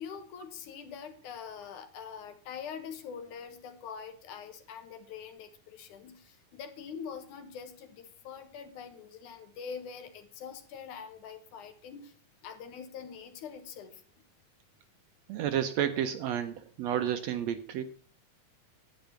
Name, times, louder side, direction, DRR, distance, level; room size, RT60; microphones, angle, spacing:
voice 1, 0.0-12.1 12.4-14.0, left 7 dB, 75° left, 8 dB, 2.8 m, -44 dB
voice 2, 15.3-17.8, right 10 dB, 75° right, 9 dB, 1.7 m, -31 dB
10.5 x 9.2 x 5.8 m, 0.44 s
omnidirectional pair, 3.6 m